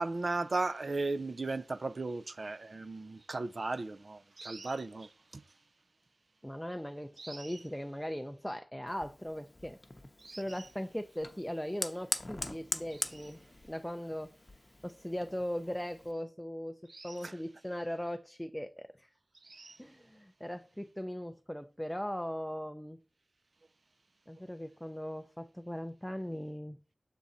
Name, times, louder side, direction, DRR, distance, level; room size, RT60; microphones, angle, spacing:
voice 1, 0.0-5.4 7.2-7.6 10.2-10.4 16.9-17.3 19.4-19.8, right 3 dB, 55° right, 0.5 m, -36 dB
voice 2, 6.4-9.8 10.3-14.3 14.8-19.1 19.8-23.0 24.3-26.8, equal, 5° left, 0.4 m, -39 dB
Fire, 8.9-16.1, left 2 dB, 35° left, 0.7 m, -43 dB
7.0 x 3.8 x 4.1 m
wide cardioid pair, 85°, 0 cm